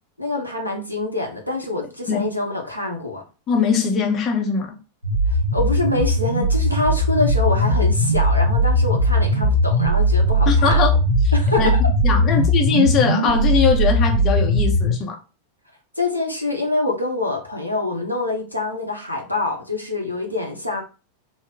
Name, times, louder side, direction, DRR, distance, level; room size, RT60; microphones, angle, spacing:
voice 1, 0.2-3.2 5.3-10.8 11.3-11.8 16.0-20.8, left 2 dB, 90° left, 0.8 m, -25 dB
voice 2, 3.5-4.7 10.5-11.3 11.6-11.7 12.0-15.2, left 5 dB, 30° left, 0.6 m, -21 dB
sound 1, 5.0-14.9, equal, 80° right, 0.6 m, -19 dB
3.1 x 2.0 x 3.9 m
figure-of-eight pair, 90°, 0 cm